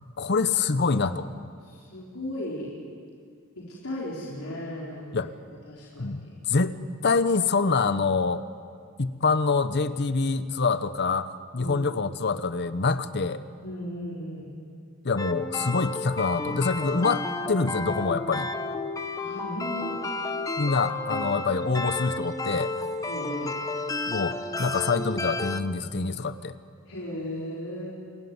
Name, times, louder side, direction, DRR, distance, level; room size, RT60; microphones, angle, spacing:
voice 1, 0.2-1.3 5.1-5.3 6.0-6.7 7.0-8.4 9.0-13.4 15.0-18.5 20.6-22.7 24.1-26.5, left 4 dB, 50° left, 13 dB, 0.9 m, -26 dB
voice 2, 1.6-2.8 3.6-5.3 5.6-6.3 11.6-11.9 13.6-14.5 19.2-20.0 21.1-21.5 23.0-23.6 26.8-27.9, left 1 dB, 80° left, -6 dB, 4.2 m, -36 dB
sound 1, 15.2-25.6, left 2 dB, 15° left, 0.8 m, -32 dB
28.0 x 13.5 x 9.5 m, 2.1 s
head